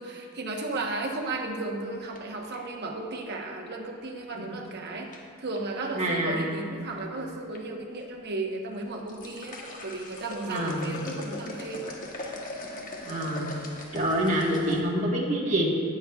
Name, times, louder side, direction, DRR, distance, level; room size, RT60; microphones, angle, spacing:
voice 1, 0.0-12.0, right 2 dB, 50° right, 1 dB, 1.1 m, -34 dB
sound 1, 0.7-2.8 4.4-4.7 5.1-5.6 6.5-7.0 7.3-7.6 8.0-8.1 8.8-14.8, left 2 dB, 40° left, 1.1 m, -40 dB
voice 2, 6.0-6.6 10.4-11.1 13.0-13.5 13.9-15.7, right 1 dB, 35° right, -3 dB, 1.4 m, -27 dB
18.0 x 6.8 x 2.4 m, 2.5 s
head